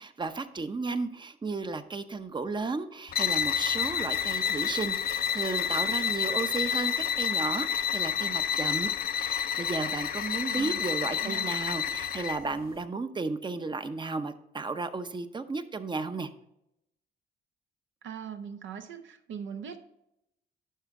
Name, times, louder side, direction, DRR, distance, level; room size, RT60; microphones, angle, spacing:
voice 1, 0.0-16.3, right 3 dB, 25° right, 11 dB, 0.7 m, -34 dB
sound 1, 3.1-12.5, left 8 dB, 50° left, 0.4 m, -29 dB
voice 2, 11.1-11.5 18.0-19.8, right 7 dB, 75° right, 7 dB, 0.7 m, -40 dB
11.0 x 4.9 x 3.6 m, 0.82 s
cardioid pair, 90°, 20 cm